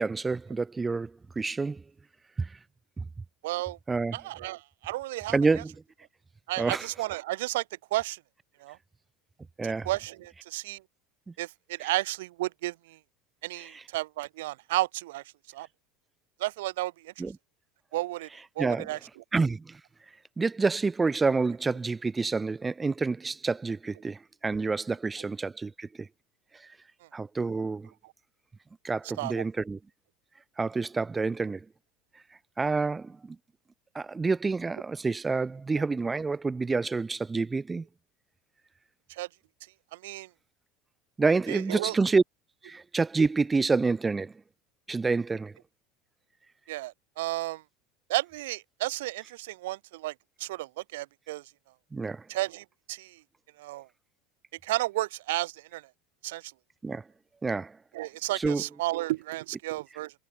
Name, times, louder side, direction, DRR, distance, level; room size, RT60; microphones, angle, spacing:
voice 1, 0.0-1.8 2.4-2.5 3.0-3.1 3.9-4.2 5.3-5.7 6.6-6.9 9.6-9.9 11.3-11.4 13.6-13.8 17.2-17.4 18.6-18.9 19.3-19.8 20.4-26.1 27.1-27.9 28.8-29.8 30.6-31.6 32.6-33.4 33.9-37.8 41.2-42.2 42.6-44.3 44.9-45.5 51.9-52.2 56.8-57.0 57.4-57.8 58.3-58.6, right 4 dB, 15° right, 1.8 m, -28 dB
voice 2, 3.4-3.8 4.1-5.4 6.5-7.6 7.9-8.2 8.6-8.8 9.6-10.8 11.4-13.0 13.4-15.2 15.5-15.7 16.4-17.2 17.9-18.3 18.6-19.0 29.2-29.4 39.2-39.3 39.9-40.3 41.5-41.9 46.7-47.6 48.1-50.1 50.4-51.4 52.3-53.2 53.6-53.9 54.6-55.8 56.2-56.5 57.9-60.1, right 18 dB, 80° right, 3.0 m, -32 dB
supercardioid pair, 100°, 0 cm